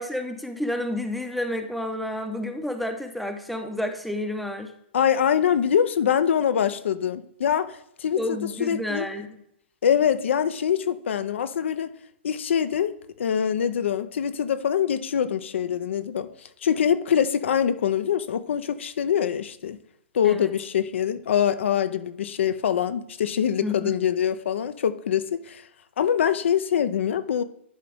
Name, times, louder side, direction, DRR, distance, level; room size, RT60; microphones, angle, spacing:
voice 1, 0.0-4.7 8.2-9.4 20.2-20.5 23.6-23.9, left 1 dB, ahead, 0.7 m, -30 dB
voice 2, 4.9-9.1 9.8-11.9 12.2-16.3 16.6-19.8 20.1-25.6 26.0-27.4, left 8 dB, 70° left, 0.5 m, -24 dB
11.0 x 3.7 x 3.4 m
hypercardioid pair, 130°, 7 cm